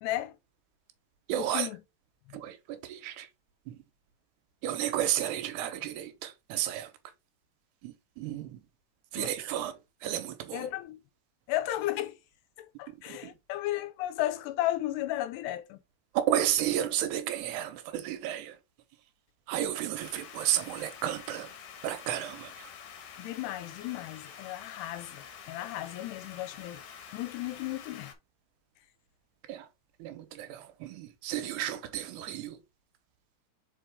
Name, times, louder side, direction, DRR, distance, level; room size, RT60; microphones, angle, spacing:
voice 1, 0.0-0.4 1.4-1.8 2.3-2.4 9.2-9.3 10.5-11.0 11.5-12.2 12.6-15.8 23.2-26.8 27.1-28.1, left 14 dB, 85° left, 2.8 m, -34 dB
voice 2, 1.3-1.7 2.3-3.3 3.7-3.8 4.6-6.9 7.8-8.6 9.1-10.7 13.2-13.3 16.1-18.6 19.5-21.5 21.8-22.7 29.5-29.7 30.0-32.6, right 11 dB, 80° right, 2.8 m, -32 dB
sound 1, 20.0-28.1, left 7 dB, 60° left, 2.1 m, -48 dB
5.5 x 5.4 x 3.5 m
omnidirectional pair, 5.0 m